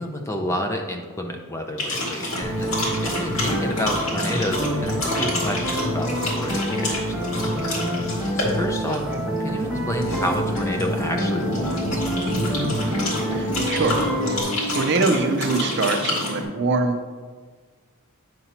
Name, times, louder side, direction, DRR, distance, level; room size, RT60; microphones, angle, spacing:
voice 1, 0.0-7.7 8.3-9.0 9.4-12.0, left 1 dB, 15° left, 3 dB, 0.5 m, -30 dB
sound 1, 1.8-16.4, left 1 dB, 75° left, 2.1 m, -28 dB
sound 2, 2.4-14.4, equal, 5° right, 1.2 m, -27 dB
voice 2, 13.3-17.1, right 3 dB, 50° right, 5 dB, 0.6 m, -24 dB
9.3 x 5.4 x 2.9 m, 1.5 s
head